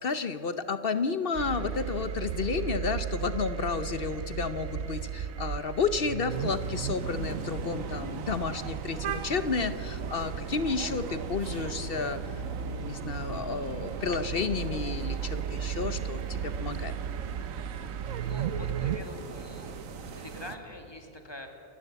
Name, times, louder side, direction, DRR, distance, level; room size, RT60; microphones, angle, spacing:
voice 1, 0.0-12.2 12.6-16.9, left 4 dB, 50° left, 11 dB, 0.9 m, -31 dB
sound 1, 1.4-19.0, right 9 dB, 65° right, 0.8 m, -36 dB
sound 2, 6.3-20.6, right 5 dB, 90° right, 1.5 m, -39 dB
voice 2, 18.2-21.5, left 1 dB, 20° left, 4 dB, 2.2 m, -45 dB
30.0 x 11.0 x 8.1 m, 2.9 s
omnidirectional pair, 1.3 m